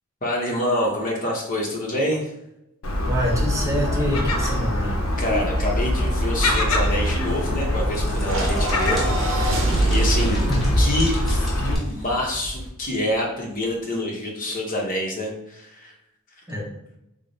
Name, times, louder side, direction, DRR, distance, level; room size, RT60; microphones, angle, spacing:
voice 1, 0.2-2.3 5.2-9.1 9.5-10.4 10.8-15.9, left 1 dB, 40° left, -1 dB, 0.7 m, -26 dB
Gull seagull, 2.8-11.8, left 1 dB, 85° left, 0.6 m, -23 dB
voice 2, 3.0-5.0 10.5-10.7 16.5-16.7, equal, 15° right, -3 dB, 0.7 m, -26 dB
sound 1, 6.8-12.7, left 1 dB, ahead, 1.0 m, -38 dB
sound 2, 8.2-12.7, right 1 dB, 65° right, 0.7 m, -24 dB
3.3 x 2.0 x 3.9 m, 0.86 s
head